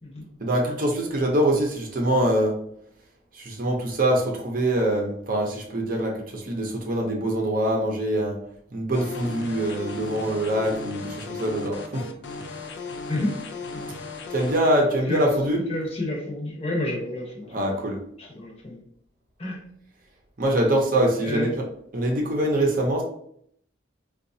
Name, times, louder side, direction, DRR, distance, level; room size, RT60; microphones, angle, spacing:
voice 1, 0.4-2.5 3.3-8.4 8.7-12.1 14.3-15.6 17.5-18.0 20.4-21.6 21.9-23.0, right 1 dB, 45° right, 0 dB, 0.6 m, -24 dB
sound 1, 8.9-14.6, left 4 dB, 65° left, 0.4 m, -36 dB
voice 2, 15.7-17.8 18.2-18.8 19.4-19.6 21.2-21.5, left 1 dB, 35° left, -2 dB, 0.8 m, -30 dB
3.8 x 2.3 x 2.6 m, 0.67 s
head